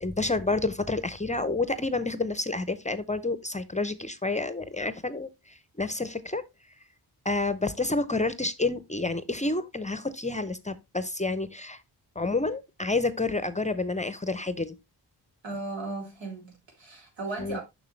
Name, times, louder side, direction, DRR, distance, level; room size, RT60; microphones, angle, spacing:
voice 1, 0.0-6.4 7.2-11.8 12.2-14.7 17.4-17.6, left 3 dB, 15° left, 0.6 m, -29 dB
voice 2, 15.4-17.6, right 3 dB, 90° right, 3.3 m, -36 dB
6.8 x 6.1 x 3.1 m
cardioid pair, 80°, 44 cm